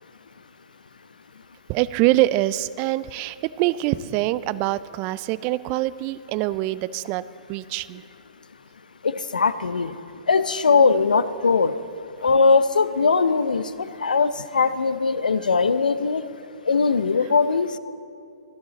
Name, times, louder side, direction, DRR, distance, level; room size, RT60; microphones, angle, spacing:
voice 1, 1.7-7.2 7.5-8.0, right 16 dB, 35° right, 17 dB, 0.4 m, -24 dB
voice 2, 9.0-9.9 10.3-11.7 12.2-16.2 16.7-17.7, left 4 dB, 85° left, 13 dB, 0.7 m, -20 dB
26.0 x 8.8 x 4.1 m, 2.6 s
hypercardioid pair, 125°, 4 cm